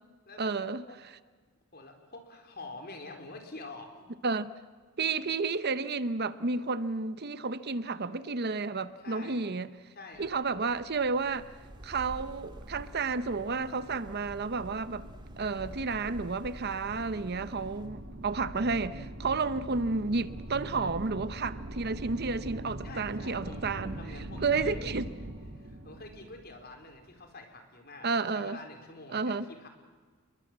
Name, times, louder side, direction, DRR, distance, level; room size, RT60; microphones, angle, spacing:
voice 1, 0.4-0.8 4.2-4.5 5.0-9.7 10.2-11.5 11.8-15.0 15.4-24.0 24.4-25.0 28.0-28.6 29.1-29.4, right 4 dB, 50° right, 0.8 m, -31 dB
voice 2, 1.7-4.1 9.0-9.4 9.9-10.3 22.8-24.9 25.5-29.7, left 2 dB, 50° left, 4.2 m, -47 dB
sound 1, 10.1-27.2, right 1 dB, 65° right, 2.2 m, -43 dB
sound 2, 11.2-17.9, equal, 20° right, 2.3 m, -50 dB
29.0 x 22.5 x 7.5 m
head